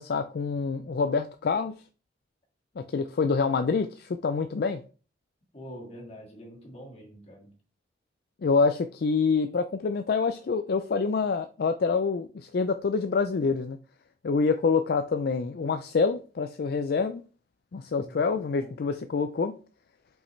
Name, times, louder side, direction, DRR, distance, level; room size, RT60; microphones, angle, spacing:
voice 1, 0.0-1.7 2.8-4.8 8.4-13.8 14.2-17.2 17.7-19.5, left 4 dB, 55° left, 0.4 m, -26 dB
voice 2, 5.5-7.5 18.0-18.8, equal, 35° left, 2.0 m, -46 dB
5.6 x 5.4 x 3.2 m
head